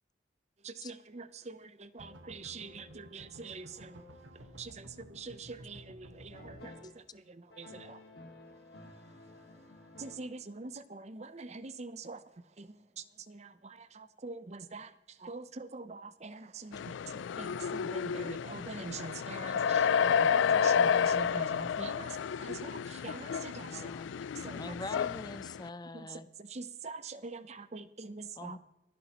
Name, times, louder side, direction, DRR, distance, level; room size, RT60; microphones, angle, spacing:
voice 1, 0.6-4.1 4.6-8.0 10.0-23.9 24.3-24.8 25.9-28.6, right 4 dB, 35° right, 13 dB, 0.6 m, -45 dB
sound 1, 2.0-6.7, equal, 80° right, 1.4 m, -52 dB
sound 2, 6.3-7.0 7.5-10.6, left 2 dB, 60° left, 2.2 m, -53 dB
voice 2, 7.1-8.0 12.7-13.1 13.5-14.0, equal, 15° right, -5 dB, 5.9 m, -82 dB
sound 3, 16.7-25.7, left 7 dB, 80° left, 0.3 m, -30 dB
voice 3, 23.6-24.1 24.5-26.3 28.4-28.6, left 2 dB, 20° left, 13 dB, 0.5 m, -43 dB
26.0 x 10.5 x 3.0 m, 0.95 s
head